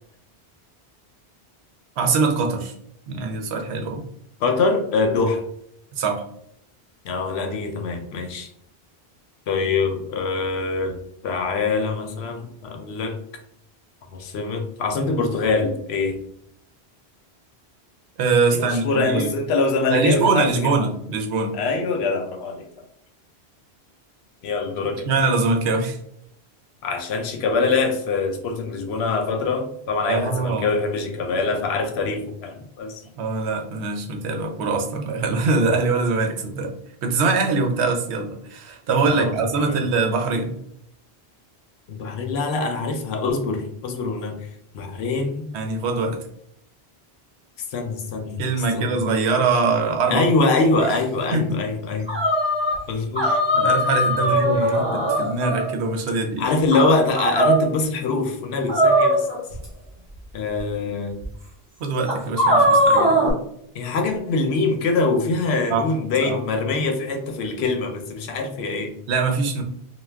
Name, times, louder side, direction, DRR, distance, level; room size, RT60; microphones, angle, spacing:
voice 1, 2.0-2.7 3.1-4.1 6.0-6.2 18.2-19.3 19.9-21.6 25.1-26.0 30.1-30.7 33.2-36.7 37.0-40.5 45.5-46.2 48.4-50.2 51.3-51.6 53.5-56.4 61.8-63.3 65.7-65.8 66.2-66.4 69.1-69.6, right 4 dB, 85° right, 3 dB, 0.9 m, -23 dB
voice 2, 4.4-5.4 7.0-8.5 9.5-13.2 14.1-16.2 18.5-20.9 21.5-22.6 24.4-25.1 26.8-33.0 39.1-39.3 39.6-39.8 41.9-44.4 44.7-45.4 47.7-48.4 48.7-49.0 50.1-52.1 52.9-53.4 54.2-54.8 56.4-59.3 60.3-61.2 63.7-69.0, left 3 dB, 75° left, 5 dB, 0.8 m, -24 dB
sound 1, 50.8-51.0 52.1-52.8 53.1-55.7 56.7-57.6 58.7-59.6 60.6-60.7 61.2-61.3 62.1-63.3, equal, 40° right, 1.0 m, -19 dB
2.3 x 2.2 x 3.2 m, 0.71 s
omnidirectional pair, 1.1 m